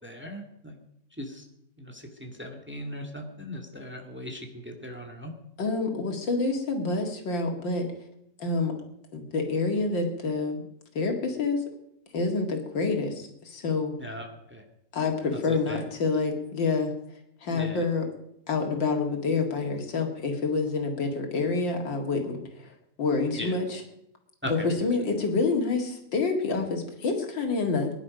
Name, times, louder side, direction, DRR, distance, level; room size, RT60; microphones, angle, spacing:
voice 1, 0.0-0.8 1.2-1.5 1.8-5.3 14.0-14.6 15.3-15.8 17.5-17.8 23.4-23.5 24.4-24.9, equal, 5° right, 2 dB, 2.0 m, -38 dB
voice 2, 5.6-7.9 8.4-8.7 9.1-10.6 10.9-11.6 12.1-13.9 14.9-16.9 17.4-18.1 18.5-22.4 23.0-23.8 24.4-27.9, left 4 dB, 90° left, 3 dB, 2.9 m, -27 dB
22.0 x 11.0 x 5.2 m, 0.78 s
omnidirectional pair, 2.0 m